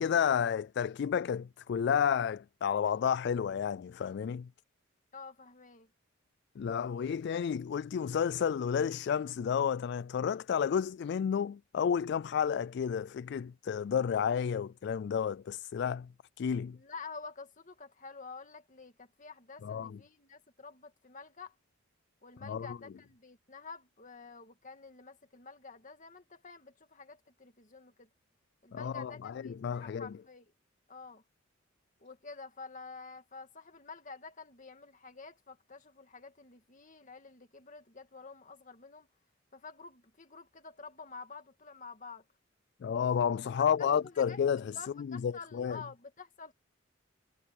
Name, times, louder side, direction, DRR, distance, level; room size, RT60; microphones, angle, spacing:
voice 1, 0.0-4.5 6.6-16.1 16.4-16.8 19.6-20.0 22.4-22.8 28.7-30.2 42.8-45.8, left 7 dB, 60° left, 0.3 m, -31 dB
voice 2, 5.1-5.9 16.7-21.5 22.2-28.1 28.6-30.5 30.9-31.2 32.0-39.1 39.5-42.2 43.8-44.4 44.7-46.5, left 4 dB, 40° left, 2.4 m, -49 dB
head